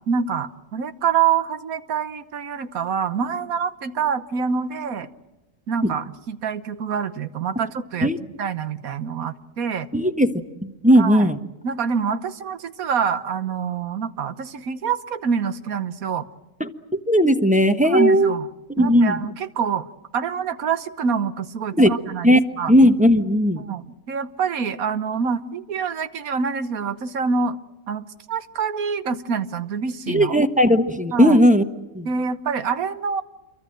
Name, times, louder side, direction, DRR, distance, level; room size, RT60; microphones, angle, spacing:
voice 1, 0.1-5.1 5.7-8.1 8.4-9.9 10.9-11.3 11.6-16.3 17.8-18.5 18.8-19.9 20.1-22.7 23.6-27.6 27.9-30.4 31.1-31.4 32.0-33.2, right 6 dB, 85° right, 12 dB, 1.5 m, -26 dB
voice 2, 9.9-10.3 10.6-11.4 16.6-18.3 18.8-19.2 21.7-21.9 22.2-22.4 22.7-23.6 30.1-31.6 31.9-32.1, equal, 5° right, 7 dB, 1.0 m, -17 dB
28.0 x 23.5 x 7.7 m, 1.0 s
omnidirectional pair, 1.5 m